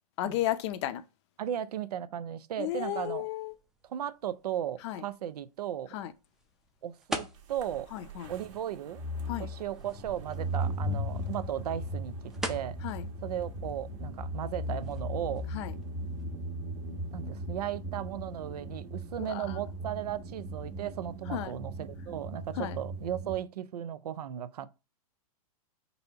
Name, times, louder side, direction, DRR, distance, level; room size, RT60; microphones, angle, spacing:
voice 1, 0.2-1.0 2.6-3.5 4.8-5.0 5.9-6.1 7.9-8.3 9.3-9.5 12.8-13.0 15.5-15.7 19.3-19.4 21.3-21.5 22.6-22.8, left 12 dB, 45° left, 0.5 m, -33 dB
voice 2, 1.4-3.3 3.9-5.9 6.8-7.9 8.3-9.0 9.4-12.8 13.2-15.5 17.1-24.7, right 10 dB, 85° right, 0.5 m, -36 dB
sound 1, 3.0-16.2, right 1 dB, ahead, 0.5 m, -46 dB
sound 2, 7.5-23.4, equal, 55° right, 1.3 m, -38 dB
4.1 x 2.8 x 4.4 m
hypercardioid pair, 140°, 19 cm